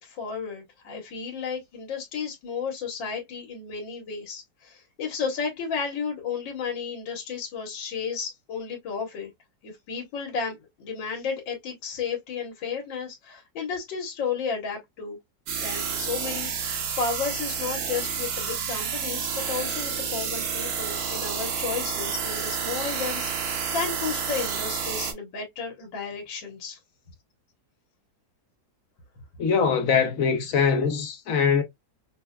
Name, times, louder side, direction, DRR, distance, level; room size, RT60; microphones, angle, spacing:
voice 1, 0.0-9.3 9.6-15.2 15.6-26.8, left 6 dB, 85° left, 1.8 m, -33 dB
sound 1, 15.5-25.1, right 6 dB, 60° right, 1.2 m, -30 dB
voice 2, 29.4-31.6, left 6 dB, 60° left, 1.0 m, -22 dB
5.6 x 2.1 x 2.3 m
omnidirectional pair, 2.0 m